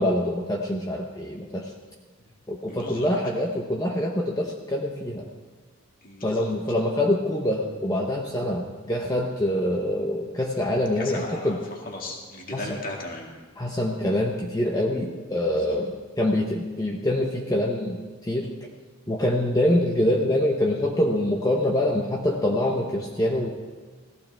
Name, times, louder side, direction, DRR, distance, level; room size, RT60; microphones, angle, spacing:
voice 1, 0.0-1.7 2.5-5.3 6.2-11.6 12.5-12.6 13.6-18.5 19.1-23.5, left 1 dB, 15° left, -1 dB, 0.9 m, -25 dB
voice 2, 2.7-3.1 6.0-6.5 11.0-11.6 11.9-13.3, left 1 dB, 40° left, -1 dB, 2.1 m, -36 dB
17.5 x 15.0 x 3.5 m, 1.4 s
head